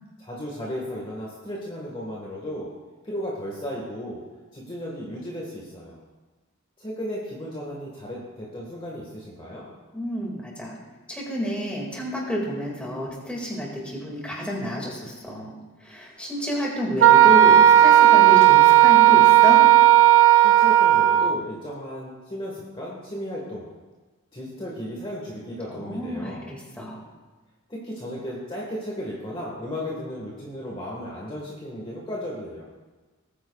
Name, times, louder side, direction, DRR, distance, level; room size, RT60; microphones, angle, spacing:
voice 1, 0.2-2.7 3.0-4.2 4.5-6.0 6.8-9.7 20.4-23.7 24.3-26.4 27.7-32.6, equal, 25° left, -4 dB, 1.6 m, -35 dB
voice 2, 9.9-10.7 11.1-15.5 15.8-19.6 25.7-27.0, equal, 5° left, -3 dB, 2.1 m, -30 dB
Wind instrument woodwind instrument, 17.0-21.4, right 12 dB, 60° right, 0.4 m, -14 dB
19.5 x 9.2 x 2.4 m, 1.3 s
head